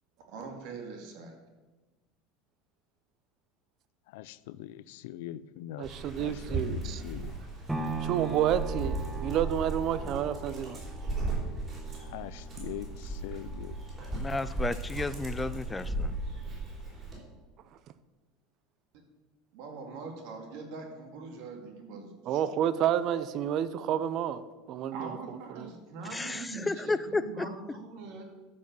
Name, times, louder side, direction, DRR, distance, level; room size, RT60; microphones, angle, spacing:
voice 1, 0.3-1.3 18.9-19.0 19.5-22.5 24.9-28.2, right 4 dB, 65° right, 3 dB, 2.3 m, -42 dB
voice 2, 4.1-4.8 5.0-5.9 6.2-7.3 12.0-13.8, left 14 dB, 80° left, 17 dB, 0.4 m, -42 dB
Dog, 5.8-17.2, right 2 dB, 30° right, 4.1 m, -36 dB
voice 3, 5.8-7.0 8.0-10.8 22.3-24.4 24.7-25.7, right 10 dB, 45° right, 15 dB, 0.6 m, -30 dB
sound 1, 7.7-15.8 16.3-16.4, right 3 dB, 5° right, 1.1 m, -41 dB
voice 4, 14.1-16.1 26.1-27.5, left 3 dB, 10° left, 14 dB, 0.4 m, -32 dB
12.5 x 5.4 x 6.8 m, 1.2 s
supercardioid pair, 140°, 0 cm